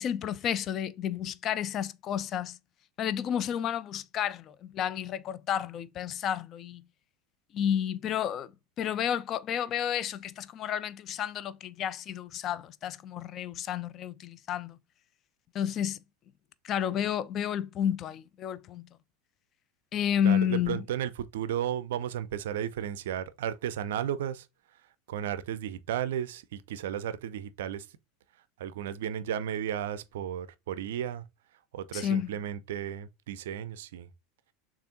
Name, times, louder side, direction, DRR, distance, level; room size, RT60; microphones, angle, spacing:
voice 1, 0.0-2.6 3.0-6.8 7.5-8.5 8.8-14.8 15.5-16.0 16.6-18.9 19.9-20.8 31.9-32.3, left 9 dB, 40° left, 0.3 m, -31 dB
voice 2, 20.2-24.4 25.1-27.9 28.6-31.2 31.7-34.1, right 10 dB, 65° right, 0.4 m, -34 dB
6.6 x 2.4 x 2.5 m
figure-of-eight pair, 80°, 0 cm